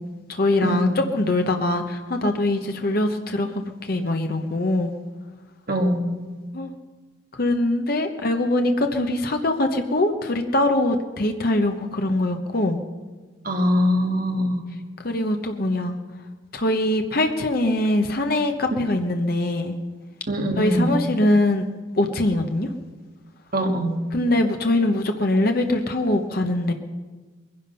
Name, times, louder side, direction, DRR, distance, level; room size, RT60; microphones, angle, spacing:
voice 1, 0.3-4.9 6.5-6.7 7.4-12.8 15.0-15.9 16.5-19.7 20.6-21.6 22.0-22.7 24.1-26.7, left 1 dB, 50° left, 5 dB, 1.0 m, -22 dB
voice 2, 5.7-6.1 13.4-14.6 20.3-20.8 23.5-24.0, equal, 45° right, 3 dB, 1.8 m, -22 dB
21.5 x 10.5 x 5.6 m, 1.3 s
head